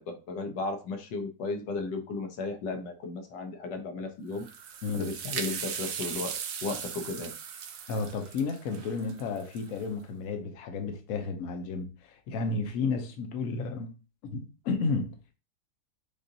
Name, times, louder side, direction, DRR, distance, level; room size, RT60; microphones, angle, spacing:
voice 1, 0.0-4.5 4.9-7.3, left 3 dB, 85° left, 1.5 m, -35 dB
sound 1, 4.3-9.8, right 7 dB, 65° right, 0.9 m, -38 dB
voice 2, 7.9-14.0 14.2-15.4, left 4 dB, 60° left, 1.1 m, -32 dB
6.7 x 2.5 x 2.7 m
omnidirectional pair, 1.8 m